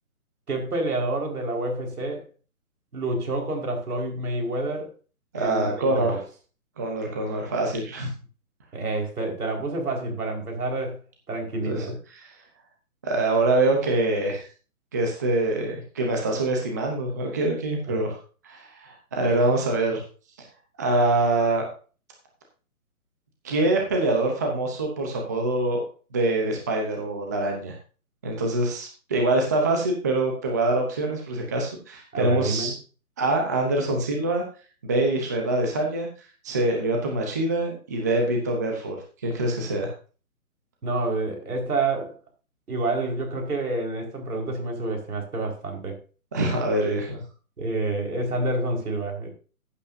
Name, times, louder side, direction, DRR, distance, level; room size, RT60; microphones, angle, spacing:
voice 1, 0.5-2.2 2.9-4.9 5.3-6.2 8.7-11.0 11.3-11.9 17.9-18.0 32.1-32.7 40.8-42.1 42.7-45.9 46.8-46.9 47.6-49.3, right 2 dB, 75° right, 2 dB, 4.8 m, -28 dB
voice 2, 5.3-6.1 6.8-8.1 11.7-11.9 13.0-14.4 14.9-18.2 18.4-20.0 20.8-21.7 23.4-25.8 26.1-27.7 28.2-32.7 33.2-34.4 34.8-36.1 36.4-39.0 39.2-39.9 46.3-47.2, right 2 dB, 10° right, 1 dB, 0.7 m, -24 dB
15.0 x 8.4 x 2.7 m, 0.36 s
hypercardioid pair, 160°, 45 cm